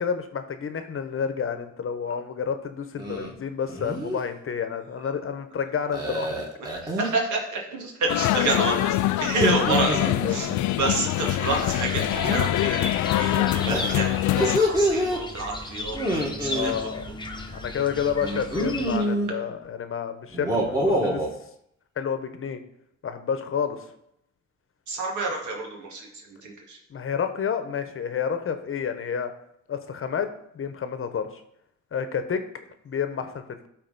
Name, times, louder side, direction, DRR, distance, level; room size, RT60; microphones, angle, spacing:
voice 1, 0.0-6.4 10.2-10.4 16.5-17.0 17.5-21.3 22.0-22.6 23.0-23.8 26.9-29.3 29.7-30.3 30.5-31.3 31.9-32.4 32.8-33.7, left 7 dB, 45° left, 9 dB, 1.0 m, -29 dB
sound 1, 3.0-3.3 3.7-4.2 5.9-7.2 9.2-10.6 12.1-12.5 13.7-15.2 15.9-16.7 18.2-19.3 20.3-21.3, equal, 10° right, 2.0 m, -26 dB
voice 2, 6.6-10.5 10.8-16.7 24.9-26.1 26.4-26.8, right 3 dB, 75° right, 0 dB, 2.1 m, -29 dB
sound 2, 8.1-14.6, left 15 dB, 75° left, 0.4 m, -24 dB
sound 3, 11.4-19.0, left 2 dB, 15° left, 1.0 m, -36 dB
12.0 x 4.3 x 4.1 m, 0.76 s
cardioid pair, 90°, 30 cm